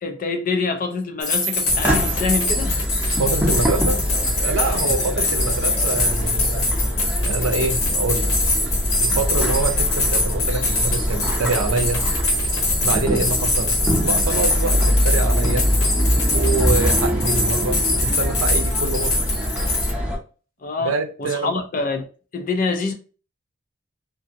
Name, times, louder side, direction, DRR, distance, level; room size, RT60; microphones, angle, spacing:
voice 1, 0.0-2.9 4.6-4.8 20.6-22.0 22.3-22.9, left 4 dB, 40° left, 0.4 m, -26 dB
sound 1, 1.2-19.9, left 2 dB, 85° left, 1.2 m, -24 dB
sound 2, 1.7-20.2, equal, 5° right, 0.6 m, -23 dB
voice 2, 3.2-4.0 4.4-6.7 7.2-8.3 9.0-12.1 12.8-15.7 16.3-19.2 20.8-21.5, right 3 dB, 80° right, 0.6 m, -25 dB
2.7 x 2.5 x 2.5 m
head